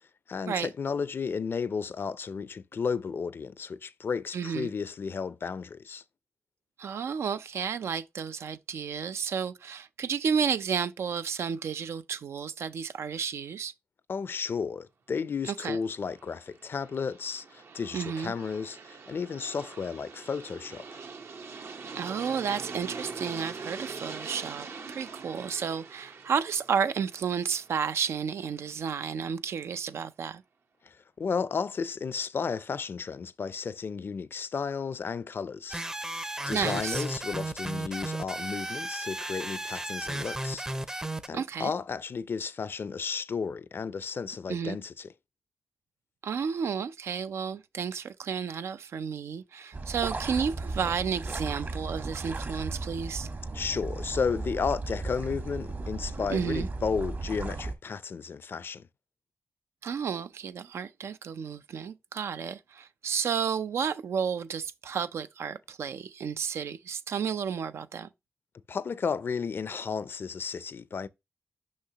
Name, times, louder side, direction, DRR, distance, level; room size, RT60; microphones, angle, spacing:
voice 1, 0.3-6.0 14.1-21.0 30.8-35.8 36.5-40.6 41.3-45.1 53.5-58.9 68.7-71.1, left 5 dB, 60° left, 0.4 m, -33 dB
voice 2, 4.3-4.7 6.8-13.7 15.5-15.8 17.9-18.3 21.9-30.4 36.5-37.0 41.3-41.7 44.5-44.8 46.2-53.3 56.3-56.7 59.8-68.1, right 7 dB, 90° right, 0.5 m, -32 dB
Aircraft, 15.9-28.7, right 4 dB, 70° right, 0.9 m, -43 dB
sound 1, 35.7-41.3, right 1 dB, 15° right, 0.5 m, -34 dB
sound 2, 49.7-57.7, right 3 dB, 50° right, 1.3 m, -35 dB
6.3 x 5.7 x 2.9 m
cardioid pair, 80°, 4 cm